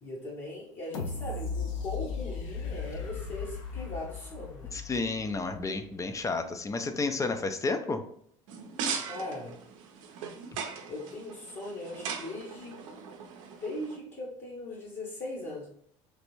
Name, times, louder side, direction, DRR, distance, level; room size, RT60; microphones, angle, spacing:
voice 1, 0.0-4.7 9.0-9.6 10.9-13.1 13.5-15.7, left 1 dB, 45° left, -6 dB, 1.0 m, -39 dB
sound 1, 0.9-5.8 6.3-6.4, left 5 dB, 85° left, 0.6 m, -37 dB
voice 2, 4.7-8.0, left 3 dB, 20° left, 8 dB, 0.4 m, -31 dB
sound 2, 8.5-14.0, right 6 dB, 80° right, 0.5 m, -39 dB
3.2 x 2.5 x 3.0 m, 0.67 s
hypercardioid pair, 80°, 16 cm